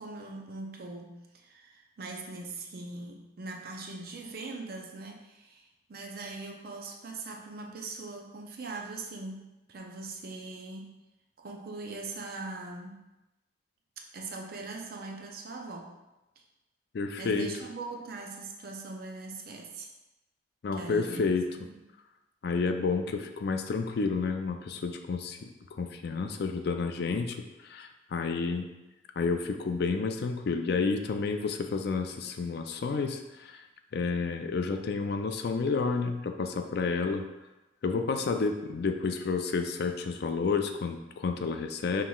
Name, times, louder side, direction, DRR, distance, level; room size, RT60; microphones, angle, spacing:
voice 1, 0.0-10.9 11.4-13.0 14.1-16.0 17.2-19.9 20.7-21.2 21.6-21.8, right 3 dB, 55° right, 1 dB, 0.6 m, -41 dB
voice 2, 16.9-17.5 20.6-21.5 22.4-28.7 29.2-33.6 33.9-37.2 37.8-42.0, left 4 dB, 60° left, 6 dB, 0.4 m, -30 dB
5.5 x 3.1 x 2.3 m, 1.0 s
head